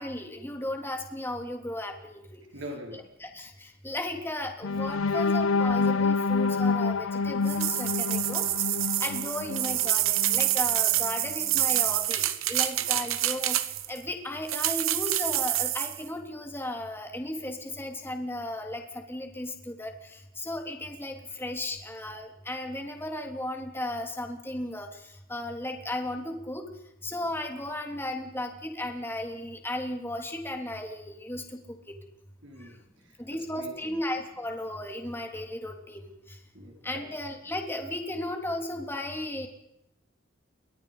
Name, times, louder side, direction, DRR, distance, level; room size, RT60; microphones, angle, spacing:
voice 1, 0.0-2.4 3.2-8.4 9.0-25.0 25.3-26.7 27.0-31.6 33.2-36.4 36.8-39.5, left 1 dB, 10° left, 3 dB, 3.4 m, -35 dB
voice 2, 2.5-3.0 12.8-13.1 32.4-34.0 36.5-37.0, equal, 60° right, 2 dB, 4.6 m, -44 dB
sound 1, 4.6-10.6 11.0-11.2 11.6-11.8, left 4 dB, 80° left, 0.9 m, -28 dB
sound 2, 7.5-14.0 14.5-16.0, right 13 dB, 85° right, 1.6 m, -27 dB
29.5 x 24.0 x 5.3 m, 0.85 s
head